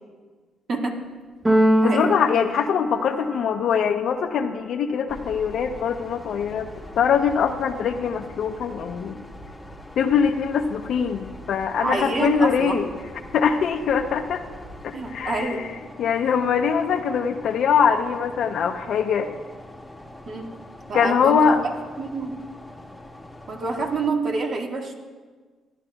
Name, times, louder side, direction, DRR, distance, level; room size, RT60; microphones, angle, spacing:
voice 1, 0.7-1.0 1.8-2.2 11.8-12.8 14.9-15.7 20.3-20.5 20.9-21.5 22.0-22.4 23.5-24.9, right 3 dB, 55° right, 1 dB, 1.5 m, -27 dB
Keyboard (musical), 1.4-3.6, right 1 dB, 15° right, 0.8 m, -22 dB
voice 2, 1.8-6.7 7.0-9.2 10.0-12.9 13.3-14.4 14.8-15.7 16.0-19.3 20.9-21.6, left 7 dB, 70° left, 4 dB, 0.5 m, -22 dB
sound 1, 5.1-24.1, left 1 dB, 5° left, 1.0 m, -43 dB
15.0 x 11.0 x 2.3 m, 1.4 s
cardioid pair, 90°, 0 cm